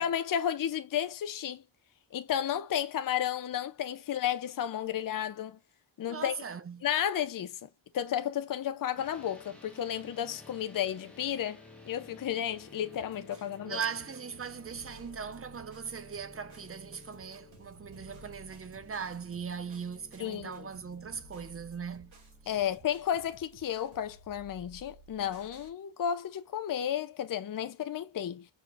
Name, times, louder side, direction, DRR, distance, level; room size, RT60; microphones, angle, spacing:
voice 1, 0.0-1.6 2.1-5.6 6.0-6.4 6.8-7.7 7.9-13.8 20.2-20.7 22.5-28.5, left 10 dB, 45° left, 0.5 m, -32 dB
voice 2, 6.1-6.9 13.7-22.1 22.4-22.6, right 6 dB, 30° right, 0.5 m, -39 dB
sound 1, 9.0-23.1, left 2 dB, ahead, 1.2 m, -55 dB
sound 2, 12.9-25.7, right 2 dB, 75° right, 2.7 m, -56 dB
4.9 x 3.9 x 2.4 m
wide cardioid pair, 175°, 48 cm